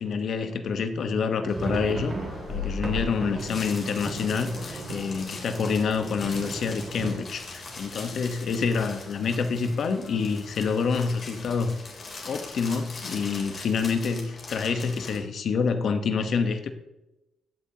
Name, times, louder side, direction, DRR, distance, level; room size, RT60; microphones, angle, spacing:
voice 1, 0.0-2.2 2.5-11.8 12.2-16.7, left 5 dB, 60° left, 1.0 m, -27 dB
sound 1, 1.2-8.9 9.2-9.4 9.6-9.8 10.4-10.9, right 2 dB, 40° right, 2.6 m, -37 dB
sound 2, 1.5-15.2, left 3 dB, 45° left, 3.3 m, -40 dB
15.0 x 8.5 x 2.9 m
cardioid pair, 90°, 0 cm